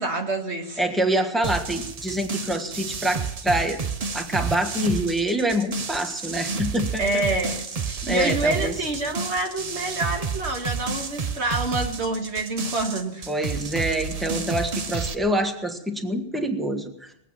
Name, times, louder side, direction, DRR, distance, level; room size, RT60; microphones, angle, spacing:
voice 1, 0.0-0.8 7.0-13.3, right 2 dB, 80° right, 3 dB, 2.1 m, -27 dB
voice 2, 0.8-3.8 4.1-7.2 8.0-8.7 13.3-17.1, right 1 dB, ahead, 5 dB, 1.3 m, -26 dB
sound 1, 1.4-15.1, right 5 dB, 40° right, 0.8 m, -31 dB
20.0 x 8.4 x 7.3 m, 0.77 s
omnidirectional pair, 1.1 m